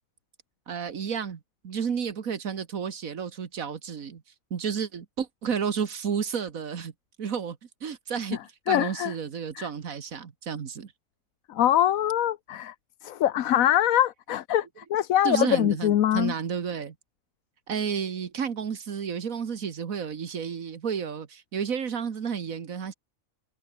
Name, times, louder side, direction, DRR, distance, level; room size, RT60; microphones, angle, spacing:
voice 1, 0.7-4.2 4.5-6.9 7.2-8.4 8.7-10.9 15.2-16.9 17.7-22.9, right 7 dB, 85° right, 1.9 m, -31 dB
voice 2, 8.7-9.1 9.5-9.7 11.5-12.7 13.0-16.3, left 11 dB, 85° left, 1.2 m, -23 dB
omnidirectional pair, 1.4 m